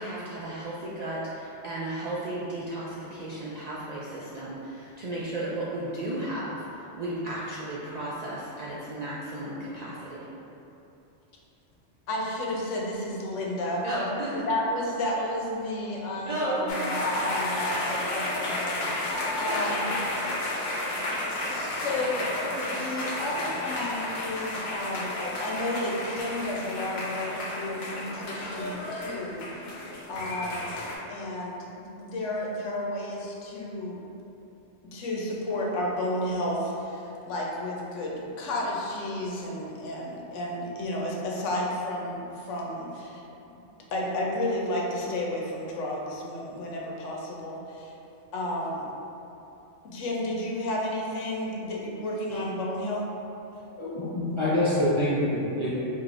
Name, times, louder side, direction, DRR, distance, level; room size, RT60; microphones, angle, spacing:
voice 1, 0.0-10.3 13.8-14.5 16.3-16.8 19.5-19.7, right 1 dB, 70° right, -8 dB, 0.4 m, -34 dB
voice 2, 12.1-14.2 14.5-19.9 21.5-29.5 30.1-30.8 31.1-34.0 34.9-43.2 43.5-43.6 43.9-47.9 48.3-48.9 49.8-53.0, left 1 dB, 90° left, -3 dB, 1.0 m, -32 dB
applause medium int small room intimate house show, 16.7-31.0, left 1 dB, 65° left, 0.9 m, -32 dB
voice 3, 53.8-55.7, left 1 dB, 35° left, -11 dB, 0.5 m, -25 dB
4.8 x 2.7 x 2.5 m, 2.9 s
omnidirectional pair, 1.2 m